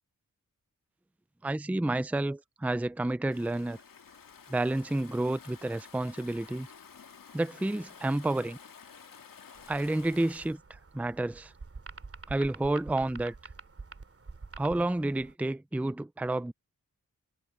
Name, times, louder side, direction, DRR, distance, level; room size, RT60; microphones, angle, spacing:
voice 1, 1.4-3.8 4.5-6.7 7.3-8.6 9.7-11.5 12.3-13.3 14.6-16.5, right 2 dB, 5° right, 0.5 m, -30 dB
Stream / Ocean, 3.3-10.6, left 6 dB, 80° left, 2.0 m, -52 dB
sound 1, 9.5-15.3, right 3 dB, 40° right, 3.0 m, -47 dB
wide cardioid pair, 115°, 33 cm